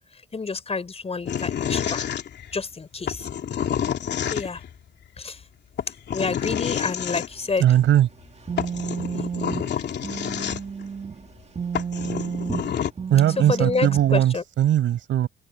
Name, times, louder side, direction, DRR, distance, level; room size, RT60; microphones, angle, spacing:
voice 1, 0.3-2.1 2.5-3.3 4.3-4.6 5.2-5.4 6.1-7.6 13.5-14.4, left 4 dB, 30° left, 4.5 m, -28 dB
sound 1, 1.3-2.6 3.1-4.7 5.8-7.3 8.2-8.3 8.6-10.9 11.4-11.5 11.7-12.9, left 9 dB, 60° left, 2.9 m, -28 dB
sound 2, 7.4-11.3 11.6-14.1, right 6 dB, 30° right, 1.9 m, -32 dB
voice 2, 7.6-8.1 13.1-15.3, right 11 dB, 75° right, 5.7 m, -19 dB
open air
cardioid pair, 90°, 20 cm